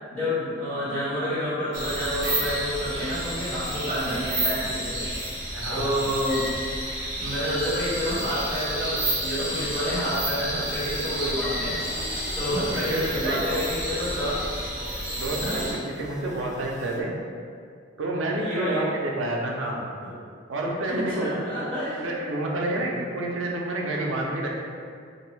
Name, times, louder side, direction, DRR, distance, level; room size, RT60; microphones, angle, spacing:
voice 1, 0.1-5.0 5.7-6.5 7.2-11.9 12.3-14.4 15.4-15.7 18.3-18.8 20.0-20.1 20.9-22.0 22.7-22.9, equal, 10° left, -15 dB, 1.3 m, -29 dB
sound 1, 1.7-15.7, right 1 dB, 40° right, 1.1 m, -30 dB
voice 2, 5.5-6.0 7.0-7.1 12.6-13.8 15.1-17.1 18.0-19.9 20.5-21.6 22.0-24.6, right 2 dB, 90° right, -1 dB, 0.5 m, -29 dB
sound 2, 11.7-17.0, left 1 dB, 40° left, 0.4 m, -44 dB
2.5 x 2.3 x 3.1 m, 2.2 s
head